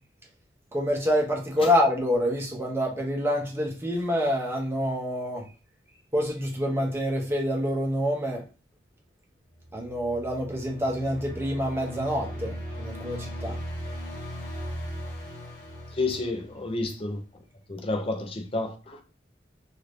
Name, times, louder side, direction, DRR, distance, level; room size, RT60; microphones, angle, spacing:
voice 1, 0.7-5.4 6.1-8.5 9.7-13.6, equal, 15° right, 0.7 m, -27 dB
sound 1, 9.6-17.0, equal, 55° left, 1.0 m, -38 dB
voice 2, 15.9-17.2 17.7-19.0, left 2 dB, 30° left, 0.5 m, -30 dB
2.8 x 2.5 x 3.3 m
head